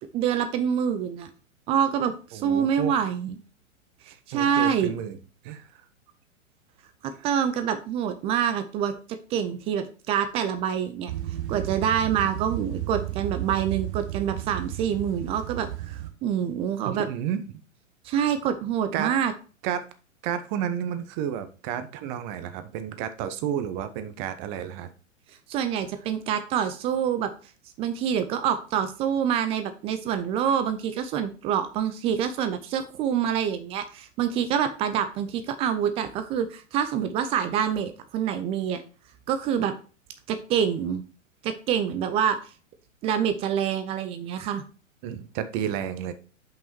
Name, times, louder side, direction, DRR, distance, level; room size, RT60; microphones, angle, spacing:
voice 1, 0.1-1.3 1.7-3.4 4.3-4.9 7.0-11.1 11.5-17.1 18.0-19.3 25.5-27.3 27.8-38.8 39.3-39.7 40.3-41.0 41.4-42.4 43.0-44.6, right 8 dB, 15° right, 10 dB, 0.4 m, -26 dB
voice 2, 2.3-2.9 4.1-5.2 5.4-5.8 7.2-7.3 16.8-17.5 18.9-19.1 19.6-19.9 20.2-24.9 45.0-46.1, right 9 dB, 35° right, 11 dB, 1.0 m, -31 dB
sound 1, 11.1-16.1, right 13 dB, 60° right, 1.2 m, -33 dB
5.6 x 5.5 x 4.4 m, 0.37 s
hypercardioid pair, 110°, 39 cm